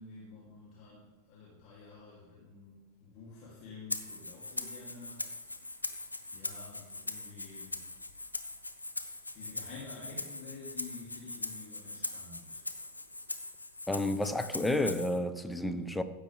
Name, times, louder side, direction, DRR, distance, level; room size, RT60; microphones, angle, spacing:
voice 1, 0.0-5.8 6.3-7.8 9.1-12.6, left 4 dB, 40° left, 2.7 m, -50 dB
Rattle (instrument), 3.9-15.2, left 2 dB, 85° left, 0.7 m, -41 dB
voice 2, 13.9-16.0, left 1 dB, 5° left, 0.7 m, -31 dB
15.0 x 8.2 x 3.4 m
figure-of-eight pair, 90°, 0 cm